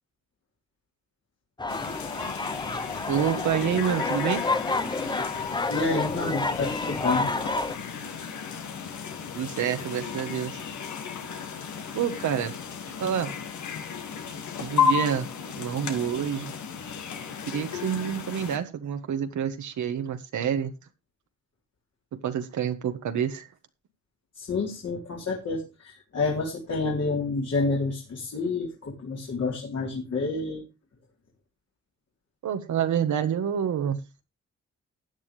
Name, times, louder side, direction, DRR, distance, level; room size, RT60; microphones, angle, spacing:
sound 1, 1.6-7.8, left 3 dB, 15° left, 0.8 m, -30 dB
sound 2, 1.7-18.6, left 7 dB, 85° left, 2.0 m, -33 dB
voice 1, 3.1-4.4 9.3-10.6 11.9-12.6 13.0-13.3 14.6-15.3 15.6-16.5 17.5-20.7 22.2-23.5 32.4-34.0, right 8 dB, 80° right, 8 dB, 1.5 m, -27 dB
voice 2, 5.7-7.3 24.4-30.6, left 3 dB, 60° left, -2 dB, 3.8 m, -29 dB
15.5 x 9.6 x 3.3 m, 0.26 s
cardioid pair, 85°, 29 cm